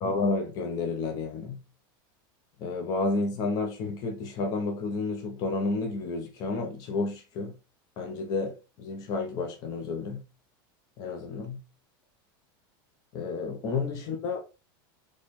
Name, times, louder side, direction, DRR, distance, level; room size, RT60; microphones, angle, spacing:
voice 1, 0.0-1.6 2.6-7.5 8.0-8.5 8.8-10.2 11.0-11.6 13.1-14.4, left 3 dB, 30° left, 0.7 m, -31 dB
4.3 x 3.1 x 3.1 m
supercardioid pair, 175°, 12 cm